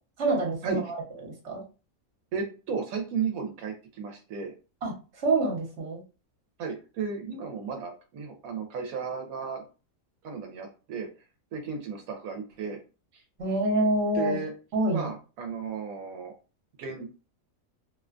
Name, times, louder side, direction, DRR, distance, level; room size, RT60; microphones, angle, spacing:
voice 1, 0.2-1.0 1.4-1.6 4.8-4.9 5.2-6.0 13.4-14.3 14.7-15.1, right 2 dB, 55° right, 0 dB, 1.2 m, -26 dB
voice 2, 2.3-4.5 6.6-9.6 10.2-11.1 11.5-12.8 13.1-13.2 14.1-14.5 14.9-16.3 16.8-17.1, right 5 dB, 90° right, 3 dB, 1.0 m, -34 dB
2.8 x 2.1 x 2.4 m, 0.33 s
omnidirectional pair, 1.4 m